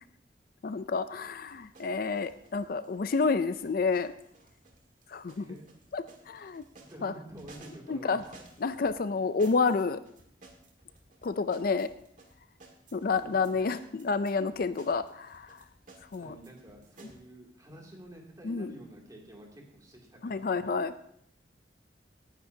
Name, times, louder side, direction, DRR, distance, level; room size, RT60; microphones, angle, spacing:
voice 1, 0.6-4.1 5.1-5.5 5.9-6.6 7.0-7.1 7.9-8.2 8.6-10.0 11.2-11.9 12.9-15.6 16.1-16.3 18.4-18.7 20.2-20.9, left 4 dB, 55° left, 12 dB, 0.4 m, -29 dB
sound 1, 1.4-8.9 9.4-17.2, right 3 dB, 45° right, 2.0 m, -56 dB
voice 2, 5.3-5.7 6.1-6.3 6.8-8.2 13.2-13.7 16.2-20.9, right 1 dB, 20° right, -1 dB, 2.6 m, -50 dB
18.5 x 10.0 x 2.8 m, 0.70 s
head